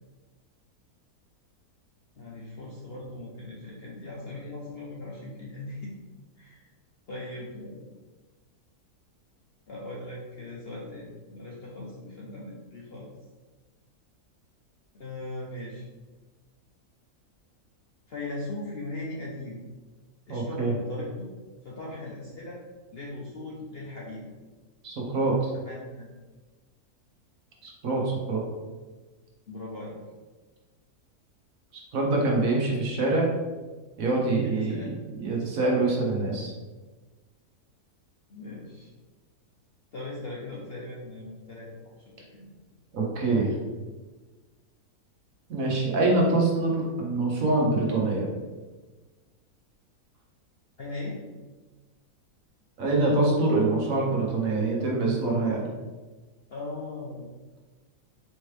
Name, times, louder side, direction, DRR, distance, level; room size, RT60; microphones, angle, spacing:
voice 1, 2.2-5.9 6.4-6.7 7.1-7.9 9.7-13.1 14.9-15.9 18.1-19.6 20.3-21.3 21.6-22.6 22.9-24.3 25.5-26.1 29.5-29.9 34.4-34.9 38.3-38.9 39.9-42.5 50.8-51.2 56.5-57.3, left 2 dB, 55° left, -4 dB, 0.7 m, -39 dB
voice 2, 20.3-20.7 24.8-25.5 27.6-28.4 31.7-33.3 34.0-36.5 42.9-43.5 45.5-48.3 52.8-55.7, right 2 dB, 65° right, -2 dB, 1.2 m, -25 dB
4.4 x 3.0 x 3.2 m, 1.3 s
omnidirectional pair, 1.6 m